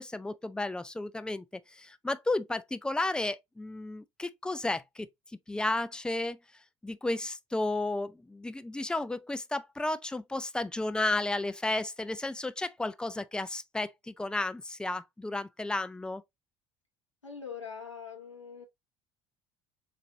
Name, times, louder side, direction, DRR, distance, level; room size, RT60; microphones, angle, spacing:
voice 1, 0.0-1.4 1.8-5.1 5.5-6.4 6.8-16.2, left 2 dB, 5° left, 0.4 m, -33 dB
voice 2, 17.2-18.6, left 6 dB, 85° left, 1.0 m, -42 dB
7.2 x 2.5 x 2.6 m
figure-of-eight pair, 60°, 15 cm